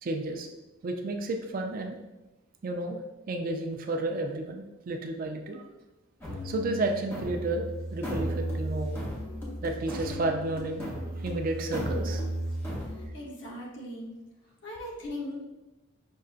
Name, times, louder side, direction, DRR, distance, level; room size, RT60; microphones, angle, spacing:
voice 1, 0.0-0.5 0.8-2.0 2.6-3.0 3.3-5.6 6.4-9.0 9.6-12.3, right 2 dB, 45° right, 4 dB, 0.4 m, -32 dB
sound 1, 6.2-13.1, equal, 10° left, 0.9 m, -34 dB
voice 2, 12.9-14.1 14.6-15.4, left 1 dB, 65° left, -2 dB, 0.9 m, -39 dB
5.3 x 2.6 x 2.4 m, 1.0 s
head